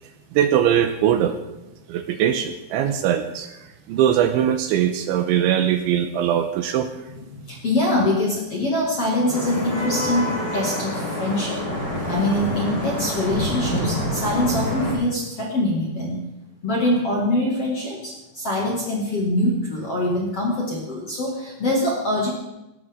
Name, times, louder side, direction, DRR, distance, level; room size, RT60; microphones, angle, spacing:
voice 1, 0.3-1.4 1.9-3.6 3.9-6.9, right 10 dB, 80° right, 7 dB, 2.9 m, -21 dB
voice 2, 7.5-11.6 12.1-16.2 16.6-22.3, left 1 dB, 45° left, -3 dB, 2.0 m, -24 dB
Vehicle horn car horn honking / Traffic noise roadway noise, 9.3-14.9, left 1 dB, 20° left, 5.5 m, -27 dB
18.5 x 15.5 x 3.7 m, 0.97 s
omnidirectional pair, 5.9 m